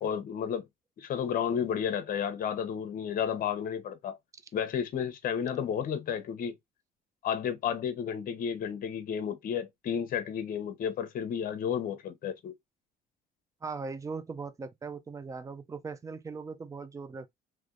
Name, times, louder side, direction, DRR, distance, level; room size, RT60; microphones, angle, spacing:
voice 1, 0.0-0.7 1.0-4.2 4.5-6.6 7.2-12.5, left 8 dB, 55° left, 1.0 m, -32 dB
voice 2, 13.6-17.3, right 4 dB, 20° right, 0.6 m, -39 dB
3.4 x 3.2 x 3.8 m
cardioid pair, 110°, 17 cm